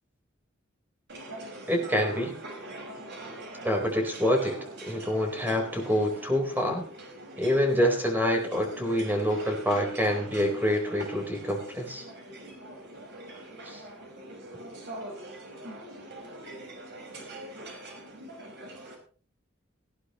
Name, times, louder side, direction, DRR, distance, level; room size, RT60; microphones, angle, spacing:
sound 1, 1.1-19.0, right 1 dB, 60° right, 5.4 m, -43 dB
voice 1, 1.7-2.3 3.6-6.9 7.4-12.0 13.7-13.8, equal, 10° right, 3 dB, 4.1 m, -26 dB
19.0 x 15.5 x 3.1 m, 0.41 s
head